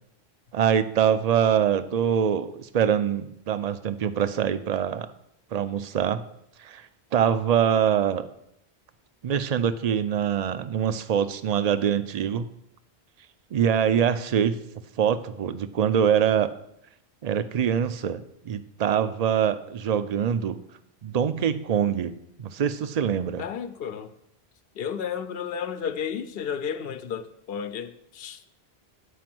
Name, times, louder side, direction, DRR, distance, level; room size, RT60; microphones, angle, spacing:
voice 1, 0.5-5.1 5.5-6.2 6.6-6.9 7.1-8.3 9.2-12.5 13.5-14.6 15.0-16.5 17.2-20.6 21.0-23.4, right 8 dB, 45° right, 12 dB, 0.6 m, -24 dB
voice 2, 23.4-24.1 24.7-28.4, left 7 dB, 70° left, 11 dB, 0.9 m, -32 dB
10.0 x 5.2 x 7.7 m, 0.78 s
omnidirectional pair, 1.1 m